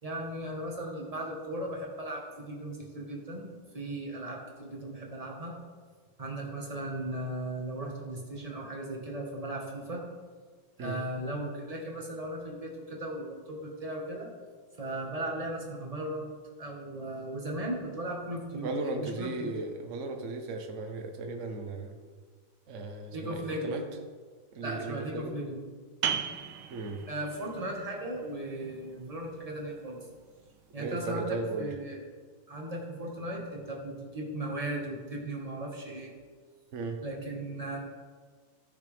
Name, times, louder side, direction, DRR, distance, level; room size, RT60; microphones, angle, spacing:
voice 1, 0.0-5.5 6.2-10.0 10.8-14.3 14.8-16.3 16.6-19.6 23.1-23.8 24.6-25.6 27.1-30.0 30.7-32.0 32.5-36.2 37.0-37.8, right 1 dB, 20° right, -1 dB, 1.8 m, -37 dB
voice 2, 18.6-21.9 22.7-23.8 24.5-25.3 26.7-27.0 30.8-31.7 36.7-37.0, right 3 dB, 45° right, 4 dB, 1.2 m, -36 dB
sound 1, 26.0-31.4, right 8 dB, 85° right, 1.8 m, -39 dB
14.5 x 6.4 x 5.2 m, 1.5 s
omnidirectional pair, 2.3 m